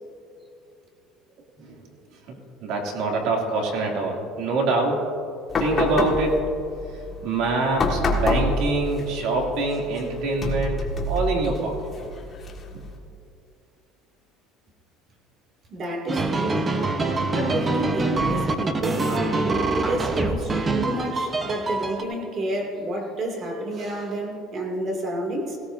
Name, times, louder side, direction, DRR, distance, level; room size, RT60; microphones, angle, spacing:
voice 1, 1.6-5.1 5.6-6.4 6.9-11.8 12.7-12.8, right 3 dB, 70° right, 0 dB, 2.5 m, -25 dB
sound 1, 5.5-13.0, left 2 dB, 25° left, 1.7 m, -28 dB
voice 2, 15.7-16.7 17.3-25.6, right 1 dB, 35° right, 2 dB, 2.3 m, -30 dB
sound 2, 16.1-22.0, right 3 dB, 20° right, 0.9 m, -25 dB
17.5 x 17.0 x 2.6 m, 2.5 s
cardioid pair, 145°, 0 cm